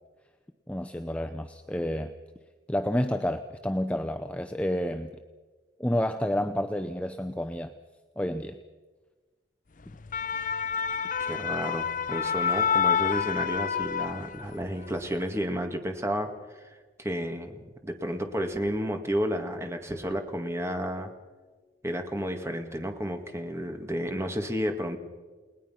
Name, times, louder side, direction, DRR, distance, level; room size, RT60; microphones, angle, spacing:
voice 1, 0.7-2.1 2.7-5.1 5.8-7.7 8.2-8.6, left 1 dB, 5° left, 6 dB, 0.7 m, -29 dB
sound 1, 9.9-14.6 15.0-15.2, left 7 dB, 45° left, 0.6 m, -28 dB
voice 2, 11.2-16.3 17.0-21.1 21.8-25.0, equal, 15° right, 5 dB, 2.0 m, -31 dB
30.0 x 19.5 x 5.8 m, 1.4 s
head